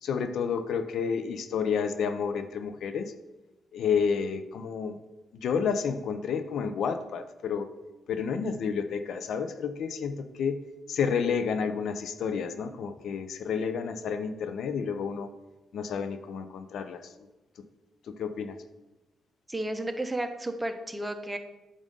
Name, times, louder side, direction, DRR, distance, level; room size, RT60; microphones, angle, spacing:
voice 1, 0.0-3.1 3.7-5.0 5.3-7.7 8.1-10.6 10.9-15.3 15.7-17.1 17.6-17.7 18.1-18.6, left 6 dB, 75° left, 9 dB, 0.4 m, -30 dB
voice 2, 19.5-21.4, right 1 dB, 15° right, 8 dB, 0.7 m, -32 dB
7.3 x 2.5 x 5.2 m, 1.1 s
supercardioid pair, 55°, 0 cm